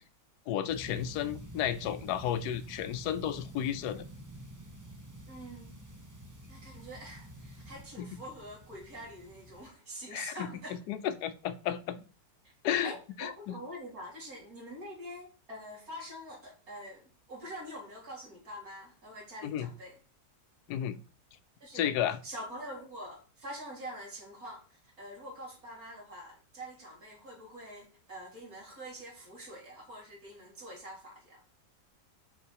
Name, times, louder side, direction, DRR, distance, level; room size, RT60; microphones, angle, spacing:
voice 1, 0.5-4.1 8.0-8.2 10.1-12.0 12.6-12.9 13.2-13.6 19.4-19.7 20.7-21.0 21.7-22.2, left 10 dB, 80° left, 14 dB, 1.2 m, -33 dB
sound 1, 0.7-9.7, right 1 dB, 15° right, 0.8 m, -48 dB
voice 2, 5.3-5.7 6.5-10.8 12.4-12.5 12.8-19.9 21.6-21.9 22.2-31.4, equal, 60° right, -4 dB, 2.9 m, -45 dB
5.7 x 5.3 x 4.6 m, 0.38 s
omnidirectional pair, 1.7 m